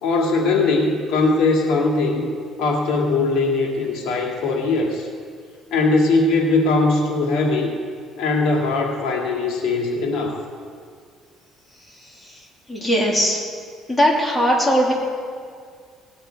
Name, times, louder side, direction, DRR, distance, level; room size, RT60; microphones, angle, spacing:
voice 1, 0.0-2.3 2.6-5.1 5.7-7.7 8.2-10.4, left 3 dB, 75° left, 0 dB, 2.0 m, -20 dB
voice 2, 12.7-13.4 13.9-14.9, equal, 10° left, -3 dB, 2.7 m, -19 dB
18.5 x 9.1 x 4.5 m, 2.1 s
cardioid pair, 115°, 0 cm